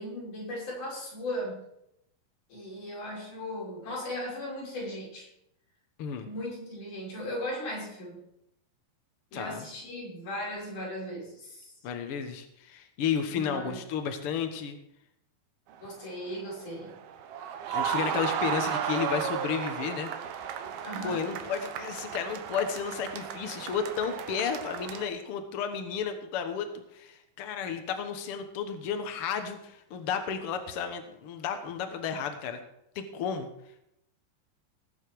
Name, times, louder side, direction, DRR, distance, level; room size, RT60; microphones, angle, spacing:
voice 1, 0.0-1.6 2.5-5.3 6.2-8.2 9.3-11.7 13.3-13.8 15.8-16.9 20.8-21.3, equal, 55° left, -5 dB, 7.1 m, -37 dB
voice 2, 9.3-9.6 11.8-14.8 17.7-20.5 21.0-32.6 32.9-33.5, left 7 dB, 80° left, 6 dB, 1.2 m, -33 dB
sound 1, 15.7-25.1, right 8 dB, 85° right, 3.0 m, -34 dB
19.0 x 8.1 x 4.7 m, 0.80 s
omnidirectional pair, 4.3 m